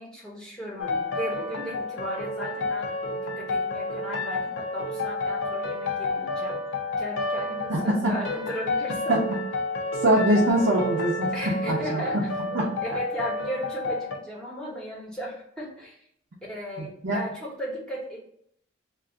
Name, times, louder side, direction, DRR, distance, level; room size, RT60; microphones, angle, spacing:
voice 1, 0.0-6.6 7.0-9.2 10.1-10.3 11.3-12.3 12.8-16.0 16.4-18.2, equal, 5° left, -4 dB, 0.8 m, -36 dB
sound 1, 0.8-14.2, left 2 dB, 75° left, 0.5 m, -30 dB
voice 2, 7.7-8.1 9.1-9.2 10.0-12.0 12.5-12.7 16.8-17.2, right 1 dB, 85° right, -5 dB, 0.7 m, -23 dB
2.5 x 2.3 x 3.7 m, 0.68 s
head